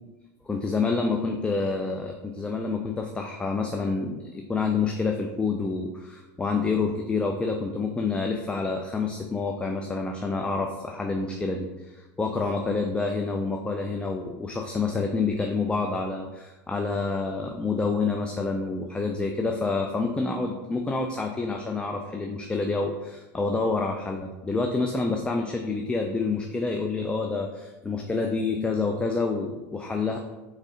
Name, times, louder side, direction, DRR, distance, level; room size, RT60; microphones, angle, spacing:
voice 1, 0.5-30.2, left 4 dB, 15° left, 3 dB, 0.4 m, -28 dB
3.8 x 3.2 x 3.7 m, 1.2 s
supercardioid pair, 100°, 8 cm